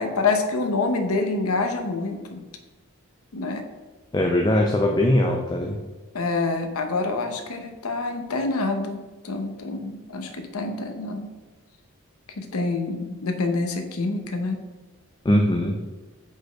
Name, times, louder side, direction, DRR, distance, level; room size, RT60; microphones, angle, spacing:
voice 1, 0.0-2.4 3.3-3.6 6.1-9.0 9.2-11.3 12.3-14.6, left 3 dB, 75° left, 6 dB, 0.8 m, -26 dB
voice 2, 4.1-5.8 15.2-15.8, left 1 dB, 20° left, 2 dB, 0.4 m, -21 dB
5.2 x 4.2 x 5.0 m, 1.2 s
head